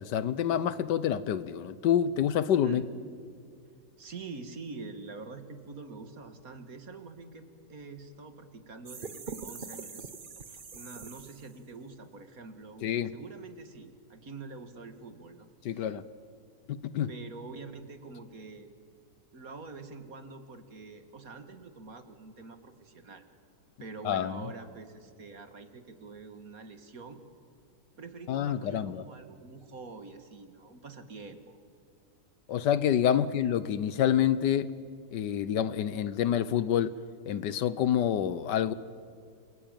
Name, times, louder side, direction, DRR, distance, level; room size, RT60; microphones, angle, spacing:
voice 1, 0.0-2.8 12.8-13.1 15.6-16.0 16.7-17.1 24.0-24.4 28.3-29.0 32.5-34.7 35.1-37.0 37.3-38.7, left 9 dB, 80° left, 16 dB, 1.5 m, -27 dB
voice 2, 4.0-10.1 10.5-16.0 17.1-18.7 19.3-23.3 23.8-27.2 28.0-31.6 33.2-33.3, right 3 dB, 55° right, 8 dB, 2.2 m, -46 dB
sound 1, 8.9-11.7, right 5 dB, 35° right, 1.1 m, -43 dB
28.0 x 22.0 x 9.0 m, 2.2 s
omnidirectional pair, 1.9 m